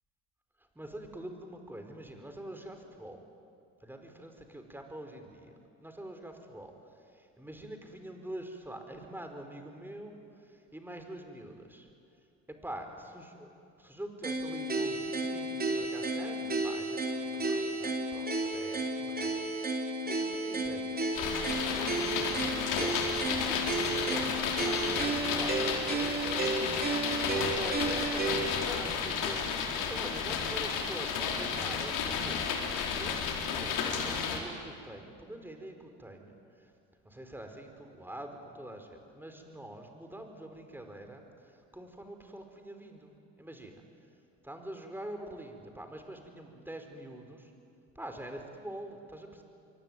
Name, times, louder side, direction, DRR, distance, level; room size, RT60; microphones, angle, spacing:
voice 1, 0.7-3.2 3.8-5.5 5.8-6.7 7.1-11.9 12.5-18.3 18.5-21.1 21.6-29.4 29.9-36.7 37.0-43.8 44.4-47.5 47.9-49.4, right 1 dB, 5° right, 5 dB, 4.8 m, -45 dB
sound 1, 14.2-28.7, right 2 dB, 25° right, 3.6 m, -33 dB
sound 2, 21.1-34.4, left 6 dB, 60° left, 4.2 m, -32 dB
26.0 x 23.5 x 9.4 m, 2.5 s
hypercardioid pair, 75°, 36 cm